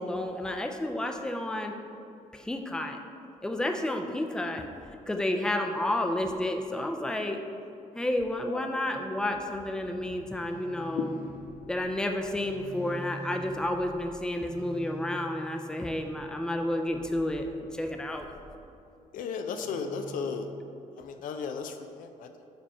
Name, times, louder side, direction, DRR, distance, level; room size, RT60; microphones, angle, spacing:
voice 1, 0.0-1.7 2.3-3.0 3.4-4.7 5.1-7.4 7.9-11.2 11.7-17.5 17.7-18.3, left 1 dB, 5° left, 4 dB, 0.4 m, -31 dB
sound 1, 9.3-18.9 19.5-20.6, right 2 dB, 20° right, 1.2 m, -46 dB
voice 2, 19.1-20.5 21.0-22.3, left 5 dB, 80° left, 7 dB, 0.4 m, -35 dB
5.1 x 3.5 x 5.3 m, 2.6 s
cardioid pair, 95°, 14 cm